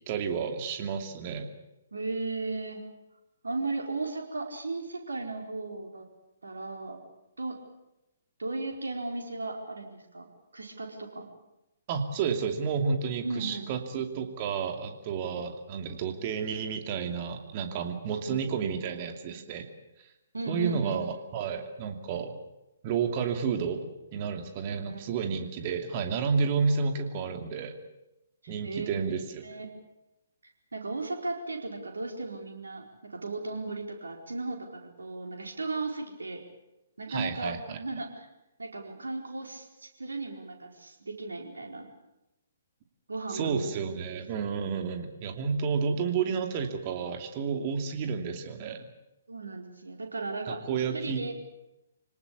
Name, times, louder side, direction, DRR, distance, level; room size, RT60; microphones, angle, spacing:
voice 1, 0.1-1.5 11.9-19.7 20.5-22.4 22.8-27.7 28.5-29.4 37.1-37.8 43.3-48.9 50.5-51.3, right 6 dB, 35° right, 6 dB, 2.7 m, -31 dB
voice 2, 1.9-2.8 3.4-6.0 6.4-7.0 7.4-7.6 8.4-10.3 10.5-11.3 13.2-13.7 18.3-18.4 18.7-19.0 20.3-21.1 24.9-25.0 28.4-28.9 29.4-29.6 30.7-36.4 37.0-38.3 38.6-41.9 43.1-43.7 49.3-50.6 50.9-51.3, right 3 dB, 70° right, 2 dB, 4.5 m, -36 dB
26.5 x 18.5 x 8.5 m, 0.93 s
figure-of-eight pair, 125°, 0 cm